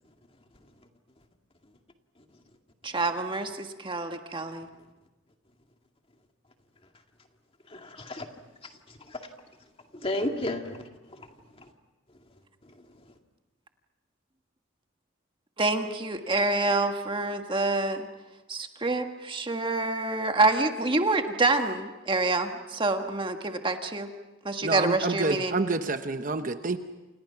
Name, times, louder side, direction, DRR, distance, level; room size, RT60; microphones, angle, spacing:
voice 1, 2.8-4.7 15.6-18.1 18.5-24.1 24.4-25.6, right 2 dB, 25° right, 5 dB, 1.7 m, -27 dB
voice 2, 7.7-8.3 8.9-9.2 9.9-11.3 11.6-11.7, left 1 dB, 30° left, 4 dB, 2.2 m, -33 dB
voice 3, 24.6-26.8, right 3 dB, 40° right, 8 dB, 1.0 m, -28 dB
30.0 x 28.0 x 5.9 m, 1.1 s
head